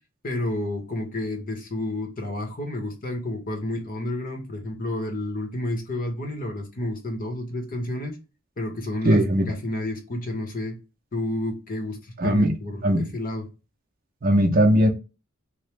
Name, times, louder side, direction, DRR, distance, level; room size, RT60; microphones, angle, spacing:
voice 1, 0.2-8.2 8.6-10.8 11.1-12.0 12.2-12.8 13.1-13.4, left 1 dB, 45° left, 0.8 m, -30 dB
voice 2, 9.0-9.5 12.2-12.5 12.8-13.1 14.2-14.9, equal, 45° right, 0.6 m, -19 dB
2.9 x 2.0 x 3.2 m
head